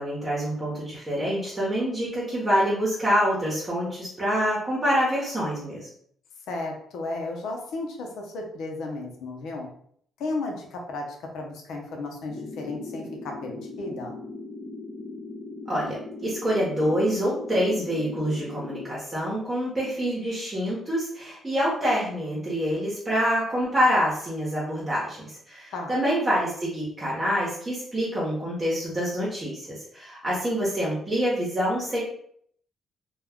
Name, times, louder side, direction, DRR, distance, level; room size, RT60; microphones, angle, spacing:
voice 1, 0.0-5.9 15.7-32.0, equal, 25° right, -6 dB, 0.9 m, -26 dB
voice 2, 6.5-9.7 10.2-14.1 25.7-25.9, left 2 dB, 80° left, 2 dB, 0.7 m, -34 dB
sound 1, 12.3-18.8, left 3 dB, 30° left, 0.5 m, -39 dB
2.3 x 2.2 x 3.5 m, 0.64 s
cardioid pair, 90°, 0 cm